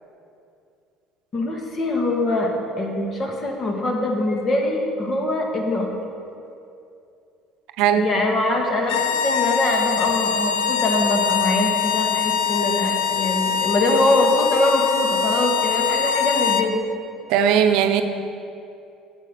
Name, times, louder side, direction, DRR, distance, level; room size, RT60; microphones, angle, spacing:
voice 1, 1.3-2.5 2.8-5.9 8.0-16.8, left 2 dB, 35° left, 1 dB, 1.7 m, -23 dB
sound 1, 8.8-16.7, left 7 dB, 80° left, 0.6 m, -23 dB
voice 2, 17.3-18.0, right 8 dB, 80° right, 7 dB, 0.7 m, -18 dB
9.0 x 7.7 x 6.8 m, 2.6 s
cardioid pair, 120°, 0 cm